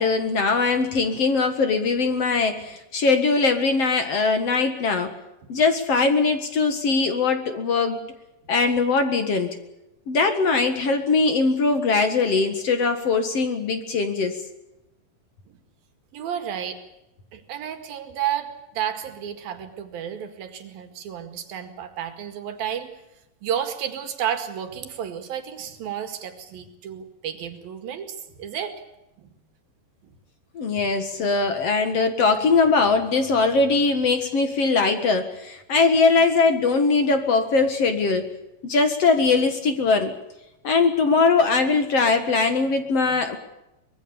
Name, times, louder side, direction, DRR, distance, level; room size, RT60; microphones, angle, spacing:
voice 1, 0.0-5.1 5.5-8.0 8.5-9.5 10.1-14.4 30.5-38.3 38.6-40.1 40.6-43.4, left 4 dB, 50° left, 7 dB, 2.4 m, -21 dB
voice 2, 16.1-16.8 17.3-22.9 23.4-28.8 29.2-29.3 30.0-30.1, right 9 dB, 80° right, 7 dB, 3.9 m, -31 dB
24.5 x 21.0 x 7.0 m, 0.91 s
omnidirectional pair, 4.1 m